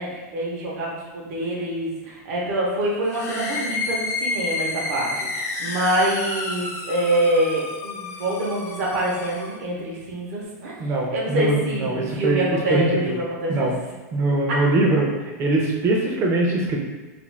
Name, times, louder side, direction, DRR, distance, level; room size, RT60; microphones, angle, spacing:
voice 1, 0.0-10.7 11.1-13.7 14.5-14.6, right 1 dB, 60° right, -4 dB, 0.8 m, -25 dB
sound 1, 3.0-9.6, left 3 dB, 30° left, 0.4 m, -30 dB
voice 2, 10.8-13.1 13.5-13.8 14.1-16.8, right 2 dB, 30° right, -1 dB, 0.6 m, -22 dB
2.5 x 2.3 x 3.2 m, 1.3 s
supercardioid pair, 130°, 9 cm